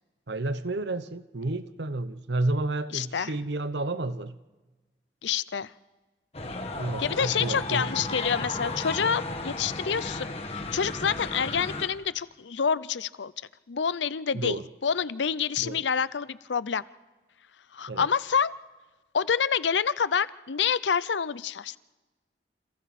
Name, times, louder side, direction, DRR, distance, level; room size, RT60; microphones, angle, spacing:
voice 1, 0.3-4.4 6.8-7.9 14.3-14.7 15.6-15.8 17.9-18.1, right 2 dB, 80° right, 0.9 m, -31 dB
voice 2, 2.9-3.3 5.2-5.7 7.0-13.3 13.7-14.5 14.8-16.8 17.7-18.5 19.1-21.8, left 7 dB, 90° left, 0.6 m, -27 dB
sound 1, 6.3-11.9, left 2 dB, 35° left, 1.8 m, -34 dB
29.0 x 28.0 x 4.3 m
head